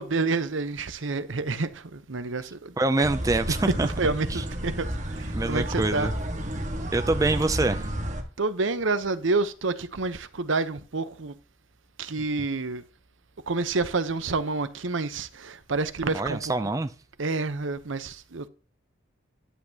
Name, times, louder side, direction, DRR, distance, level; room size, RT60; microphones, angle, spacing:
voice 1, 0.0-2.7 3.5-6.1 8.4-11.3 12.0-12.8 13.5-16.7 17.2-18.5, right 3 dB, 75° right, 0.8 m, -28 dB
voice 2, 2.8-3.9 5.3-6.1 6.9-7.9 16.1-16.9, right 2 dB, 15° right, 0.4 m, -25 dB
sound 1, 3.0-8.2, equal, 35° right, 1.5 m, -31 dB
11.0 x 8.1 x 2.8 m
head